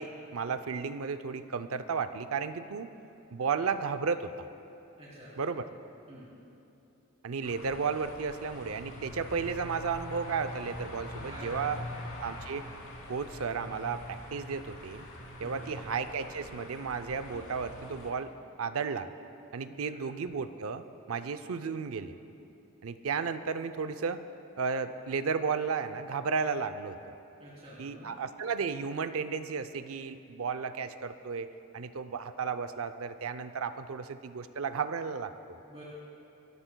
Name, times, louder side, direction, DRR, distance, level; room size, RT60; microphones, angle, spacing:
voice 1, 0.0-2.9 3.3-4.3 5.4-5.7 7.2-11.8 12.2-12.7 13.1-15.1 15.4-18.3 18.6-19.1 19.5-22.1 22.8-24.2 24.6-27.0 27.8-35.6, right 5 dB, 70° right, 10 dB, 0.5 m, -33 dB
voice 2, 5.0-5.3 6.1-6.3 11.3-11.9 15.4-15.8 19.7-20.0 27.4-28.1 35.6-35.8, equal, 25° right, -9 dB, 3.3 m, -49 dB
sound 1, 7.4-18.1, left 1 dB, 70° left, 2.9 m, -44 dB
28.5 x 14.0 x 2.3 m, 2.8 s
head